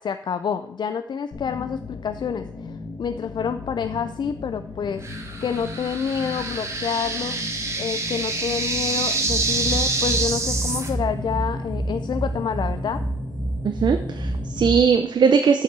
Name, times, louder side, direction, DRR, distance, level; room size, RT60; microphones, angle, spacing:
voice 1, 0.0-5.1 5.4-7.4 7.8-13.0, left 7 dB, 75° left, 10 dB, 0.4 m, -28 dB
sound 1, 1.3-14.9, left 3 dB, 55° left, 1.2 m, -37 dB
sound 2, 5.0-10.9, right 3 dB, 40° right, 1.4 m, -27 dB
sound 3, 9.3-14.8, right 1 dB, 5° right, 0.9 m, -28 dB
voice 2, 13.6-15.6, right 6 dB, 80° right, 7 dB, 0.6 m, -19 dB
7.3 x 5.7 x 7.5 m, 0.80 s
wide cardioid pair, 180°, 8 cm